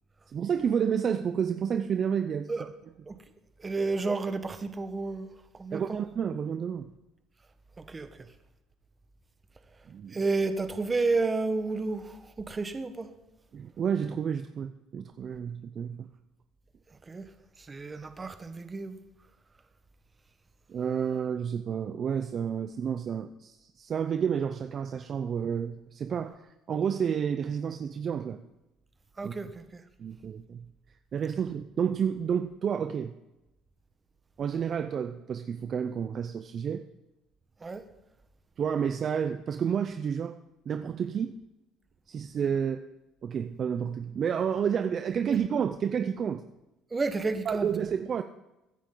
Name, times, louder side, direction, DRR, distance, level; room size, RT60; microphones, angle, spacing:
voice 1, 0.3-2.5 5.7-6.9 9.9-10.2 13.5-16.1 20.7-28.4 29.2-29.3 30.0-30.7 31.1-33.1 34.4-36.8 38.6-40.4 40.7-41.4 42.1-42.8 43.2-46.4 47.4-48.2, right 7 dB, 45° right, 8 dB, 0.6 m, -30 dB
voice 2, 3.6-5.3 5.6-6.0 7.9-8.1 10.1-13.1 17.1-17.3 17.7-19.0 29.2-29.8 37.6-37.8 46.9-47.7, right 3 dB, 25° right, 8 dB, 1.4 m, -31 dB
22.5 x 10.0 x 3.9 m, 0.95 s
cardioid pair, 100°, 0 cm